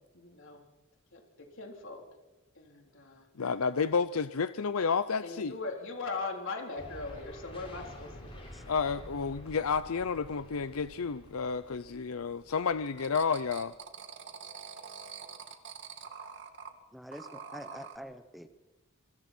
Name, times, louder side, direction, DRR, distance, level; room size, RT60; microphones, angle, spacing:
voice 1, 1.1-2.0 2.5-3.3 5.2-8.5, left 3 dB, 65° left, 2 dB, 3.7 m, -40 dB
voice 2, 3.4-5.5 8.7-13.7, left 5 dB, 85° left, 13 dB, 0.6 m, -31 dB
sound 1, 6.8-13.7, left 1 dB, 25° left, 7.1 m, -50 dB
sound 2, 12.8-16.7 17.1-18.0, right 6 dB, 60° right, 2.2 m, -45 dB
voice 3, 16.9-18.5, equal, ahead, 9 dB, 0.9 m, -46 dB
27.0 x 25.0 x 4.5 m, 1.1 s
head